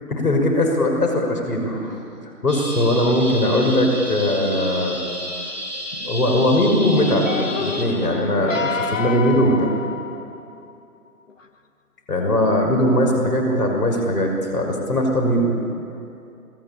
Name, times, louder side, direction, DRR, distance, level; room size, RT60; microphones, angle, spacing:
voice 1, 0.1-1.9 2.4-5.0 5.9-7.3 7.6-9.7 12.1-15.5, left 1 dB, 80° left, 2 dB, 5.9 m, -20 dB
sound 1, 2.5-7.9, equal, 25° left, 6.0 m, -32 dB
sound 2, 7.1-10.6 11.3-11.4, left 5 dB, 55° left, 1.4 m, -28 dB
28.0 x 20.5 x 8.8 m, 2.6 s
hypercardioid pair, 165°, 47 cm